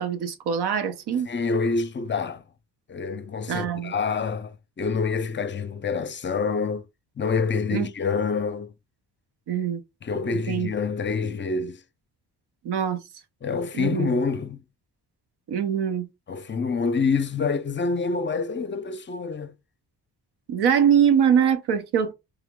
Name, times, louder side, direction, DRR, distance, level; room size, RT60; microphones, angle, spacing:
voice 1, 0.0-1.3 3.5-3.9 7.7-7.9 9.5-9.8 10.5-10.7 12.6-13.0 13.7-14.1 15.5-16.1 20.5-22.1, right 8 dB, 85° right, 0.9 m, -23 dB
voice 2, 1.2-2.4 2.9-6.9 7.2-8.7 10.0-11.8 13.4-14.6 16.3-19.5, left 4 dB, 30° left, 0.5 m, -27 dB
3.5 x 3.0 x 3.6 m
cardioid pair, 105°, 39 cm